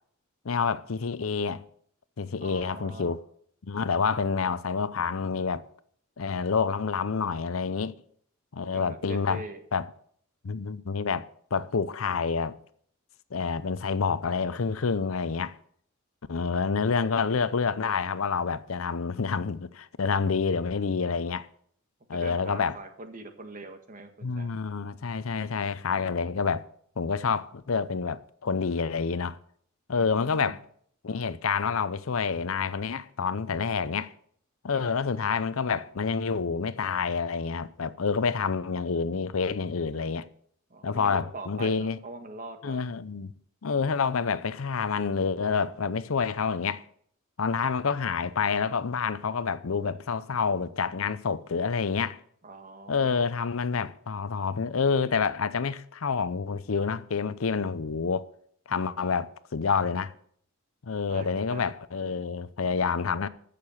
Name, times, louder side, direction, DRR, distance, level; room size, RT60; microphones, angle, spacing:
voice 1, 0.4-1.6 2.2-3.2 3.6-5.6 6.2-7.9 8.5-9.4 9.7-9.9 10.4-12.6 13.3-15.6 16.3-21.5 22.1-22.8 24.2-26.7 27.0-29.4 29.9-30.6 31.0-34.1 34.6-40.3 40.8-42.0 42.6-43.3 43.6-46.8 47.4-52.2 52.9-58.3 58.7-60.1 60.8-63.3, left 5 dB, 85° left, 0.7 m, -28 dB
voice 2, 2.4-3.2 8.6-9.6 22.2-24.6 29.9-30.6 34.7-34.8 40.7-42.9 52.4-53.3 61.1-61.7, right 2 dB, 40° right, 1.7 m, -43 dB
14.0 x 6.7 x 6.6 m
head